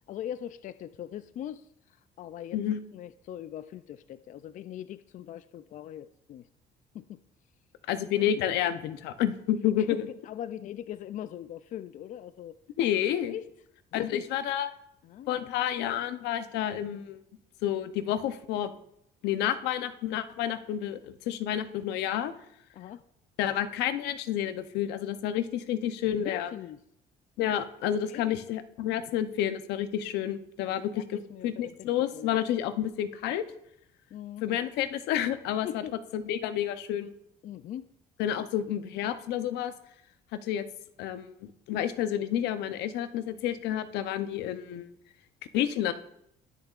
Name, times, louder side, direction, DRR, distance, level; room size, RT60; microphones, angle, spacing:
voice 1, 0.1-2.6 2.9-6.5 6.9-7.2 9.8-12.6 13.3-13.4 13.9-14.3 15.0-15.5 22.7-23.0 26.2-26.8 28.1-28.3 30.9-32.4 34.1-34.4 35.6-36.0 37.4-37.9, left 11 dB, 50° left, 13 dB, 0.4 m, -41 dB
voice 2, 7.9-10.1 12.8-13.3 13.9-14.7 15.3-17.2 17.6-18.7 19.2-22.3 23.4-26.5 27.4-33.5 34.4-35.8 36.1-37.1 38.2-39.7 40.3-40.6 41.0-44.9 45.5-45.9, left 10 dB, 90° left, 11 dB, 0.7 m, -30 dB
19.5 x 6.7 x 2.4 m, 0.76 s
cardioid pair, 110°, 17 cm